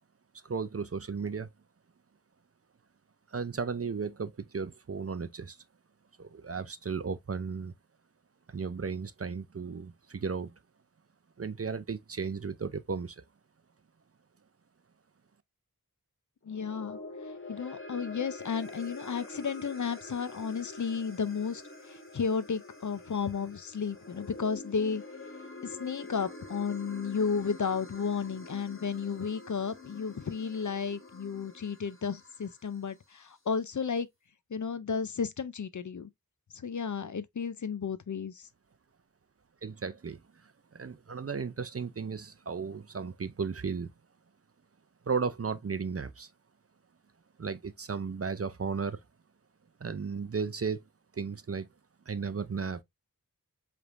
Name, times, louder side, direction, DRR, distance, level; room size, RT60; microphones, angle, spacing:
voice 1, 0.4-1.5 3.3-5.6 6.2-7.7 8.5-10.5 11.4-13.2 39.6-43.9 45.1-46.3 47.4-49.0 49.8-50.8 51.1-51.7 52.1-52.8, right 5 dB, 40° right, 0.5 m, -35 dB
sound 1, 16.4-32.9, left 2 dB, 35° left, 1.5 m, -46 dB
voice 2, 16.5-17.0 17.5-21.6 21.9-25.0 25.6-34.1 34.5-36.1 36.6-38.4, left 6 dB, 55° left, 0.5 m, -33 dB
4.9 x 3.4 x 2.5 m
wide cardioid pair, 45°, 36 cm